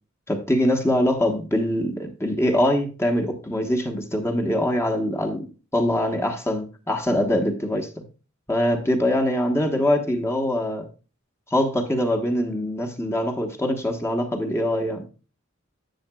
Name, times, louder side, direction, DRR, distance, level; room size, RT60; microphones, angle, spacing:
voice 1, 0.3-5.5 5.7-8.0 8.5-10.9 11.5-15.0, left 1 dB, 15° left, 1.2 m, -23 dB
10.5 x 8.6 x 2.3 m
head